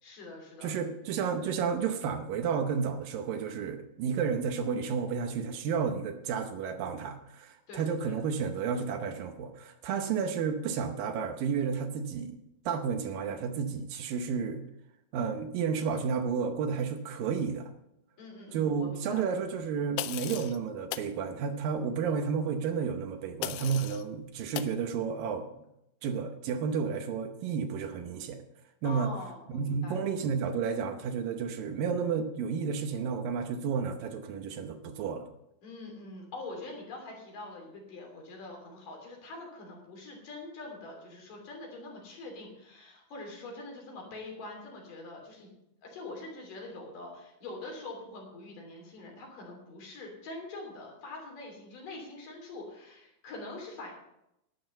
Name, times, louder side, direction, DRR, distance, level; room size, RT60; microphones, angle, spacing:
voice 1, 0.0-1.1 7.7-8.3 9.9-10.1 18.2-19.5 28.8-30.2 35.6-45.5 45.8-53.9, left 2 dB, 60° left, 1 dB, 4.6 m, -44 dB
voice 2, 0.6-12.4 12.7-14.6 15.1-17.7 18.5-25.5 26.0-28.4 28.8-29.1 29.5-35.3, right 6 dB, 75° right, 7 dB, 2.5 m, -31 dB
sound 1, 20.0-20.6 20.9-21.1 23.4-24.0 24.5-24.8, left 15 dB, 80° left, 2.3 m, -36 dB
12.0 x 10.0 x 5.4 m, 0.82 s
omnidirectional pair, 4.3 m